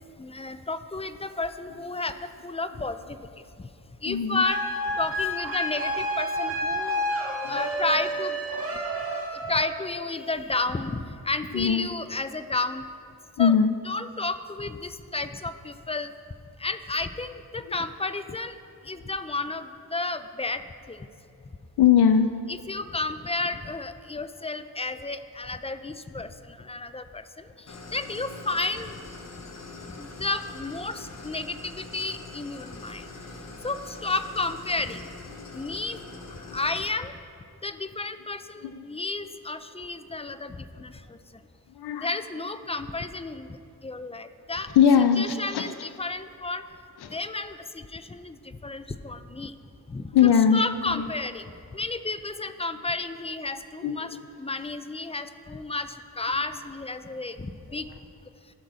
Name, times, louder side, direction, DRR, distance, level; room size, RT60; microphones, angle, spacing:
voice 1, 0.2-3.2 3.6-3.7 4.0-4.6 5.0-7.0 7.5-8.4 9.4-12.8 13.4-13.5 13.9-16.1 16.6-18.5 18.8-20.6 20.9-21.1 22.5-29.0 30.0-33.1 33.6-35.1 35.5-36.0 36.5-37.1 37.6-41.2 42.0-43.6 43.8-44.7 45.2-46.6 47.1-49.5 49.9-50.1 50.5-54.1 54.4-57.9, left 3 dB, 15° left, 11 dB, 0.4 m, -32 dB
voice 2, 4.1-4.4 7.4-7.6 11.5-11.9 13.4-13.7 21.8-22.4 36.5-36.6 38.6-38.9 40.2-40.3 41.8-42.1 44.7-45.7 47.0-47.2 50.1-51.1 53.8-54.1, left 7 dB, 85° left, 8 dB, 0.5 m, -21 dB
sound 1, 4.4-9.9, equal, 35° right, 1.9 m, -30 dB
Idling, 27.7-36.8, left 3 dB, 45° left, 1.1 m, -43 dB
15.5 x 6.1 x 4.0 m, 2.5 s
wide cardioid pair, 95°, 38 cm